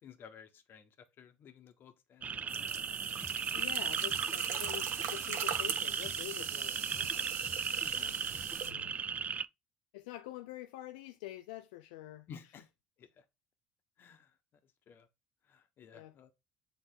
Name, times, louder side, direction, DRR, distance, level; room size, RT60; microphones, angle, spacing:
voice 1, 0.0-2.8 7.7-8.2 12.3-12.7 13.0-13.2 14.0-14.3 14.9-15.1 15.5-16.3, left 7 dB, 55° left, 1.4 m, -55 dB
sound 1, 2.2-9.4, right 6 dB, 35° right, 0.4 m, -36 dB
sound 2, 2.5-8.7, right 8 dB, 70° right, 1.4 m, -41 dB
sound 3, 3.2-8.9, equal, 5° left, 1.3 m, -53 dB
voice 2, 3.5-7.4 7.9-9.0 9.9-12.3 15.9-16.1, left 16 dB, 85° left, 0.5 m, -47 dB
8.1 x 3.7 x 4.0 m
hypercardioid pair, 70°, 4 cm